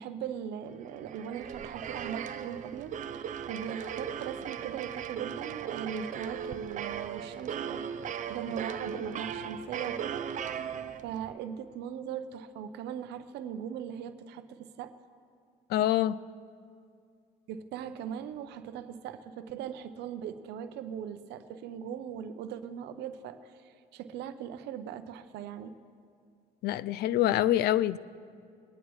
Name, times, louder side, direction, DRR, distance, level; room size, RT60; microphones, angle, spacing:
voice 1, 0.0-2.9 3.2-7.9 8.3-10.2 11.0-14.9 17.5-25.7, right 8 dB, 80° right, 10 dB, 0.7 m, -39 dB
sound 1, 0.9-11.3, right 8 dB, 50° right, 0.6 m, -38 dB
voice 2, 15.7-16.2 26.6-28.0, left 13 dB, 70° left, 18 dB, 0.4 m, -25 dB
23.0 x 10.0 x 3.1 m, 2.3 s
cardioid pair, 110°, 17 cm